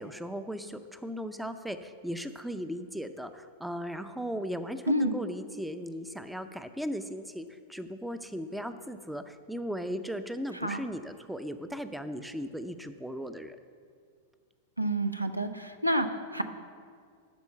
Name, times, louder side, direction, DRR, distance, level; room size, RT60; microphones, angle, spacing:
voice 1, 0.0-13.6, equal, ahead, 10 dB, 0.6 m, -37 dB
voice 2, 14.8-16.4, equal, 90° right, 8 dB, 0.6 m, -28 dB
12.5 x 4.4 x 7.7 m, 2.2 s
figure-of-eight pair, 95°, 0 cm